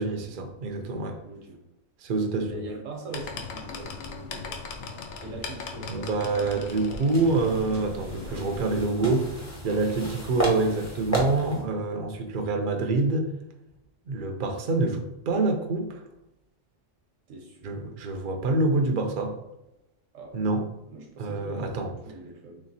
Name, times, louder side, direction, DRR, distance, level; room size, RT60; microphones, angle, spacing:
voice 1, 0.0-1.2 2.0-2.6 5.9-13.3 14.1-16.0 17.6-19.4 20.3-20.6 21.2-21.9, right 3 dB, 55° right, 3 dB, 0.6 m, -26 dB
voice 2, 1.2-1.6 2.4-4.6 5.2-7.1 17.3-17.8 20.1-20.4 20.9-22.6, right 2 dB, 80° right, 2 dB, 1.3 m, -42 dB
sound 1, 3.1-8.8, left 4 dB, 85° left, 1.0 m, -39 dB
sound 2, 7.1-11.7, right 1 dB, 15° left, 0.7 m, -33 dB
3.2 x 3.1 x 4.0 m, 0.89 s
omnidirectional pair, 1.3 m